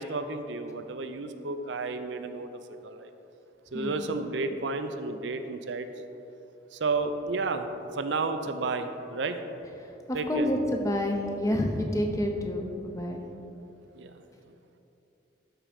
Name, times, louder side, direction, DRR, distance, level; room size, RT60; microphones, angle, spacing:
voice 1, 0.0-2.5 2.8-3.1 3.7-5.9 6.7-9.4 10.1-10.5 13.9-14.2, right 3 dB, 75° right, 8 dB, 0.5 m, -32 dB
voice 2, 3.7-4.1 9.8-13.2, left 1 dB, 15° left, 2 dB, 0.7 m, -29 dB
12.0 x 4.4 x 5.1 m, 2.9 s
head